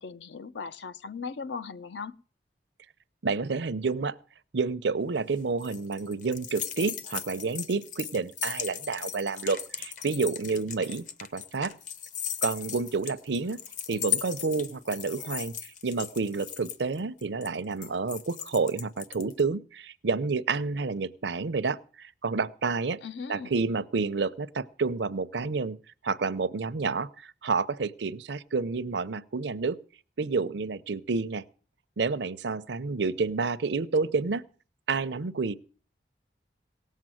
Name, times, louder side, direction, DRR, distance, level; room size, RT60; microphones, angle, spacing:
voice 1, 0.0-2.1 23.0-23.5, left 5 dB, 80° left, 0.6 m, -38 dB
voice 2, 3.2-4.1 4.5-11.1 11.3-11.7 12.4-13.6 13.9-23.0 23.3-25.8 26.0-29.8 30.2-31.4 32.0-34.4 34.9-35.6, right 4 dB, 80° right, 0.6 m, -29 dB
sound 1, 5.1-19.4, left 9 dB, 45° left, 0.8 m, -37 dB
17.5 x 7.4 x 7.7 m
head